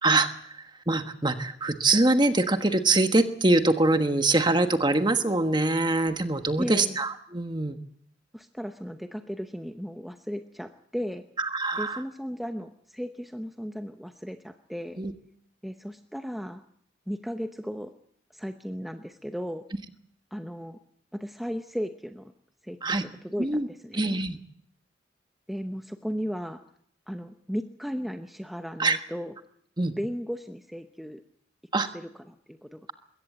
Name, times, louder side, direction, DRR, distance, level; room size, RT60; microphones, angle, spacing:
voice 1, 0.0-7.8 11.4-12.0 15.0-15.1 22.8-23.0 23.4-23.7 23.9-24.4 28.8-29.0 29.8-29.9 31.7-31.9, right 2 dB, 25° right, 8 dB, 1.3 m, -24 dB
voice 2, 6.6-7.0 8.3-11.3 11.8-15.0 15.6-16.6 17.1-17.9 18.3-19.6 20.3-20.8 21.1-22.3 22.6-24.2 25.5-26.6 27.1-29.3 30.0-31.2 31.7-32.9, equal, ahead, 6 dB, 0.8 m, -35 dB
21.5 x 17.0 x 8.0 m, 0.67 s
head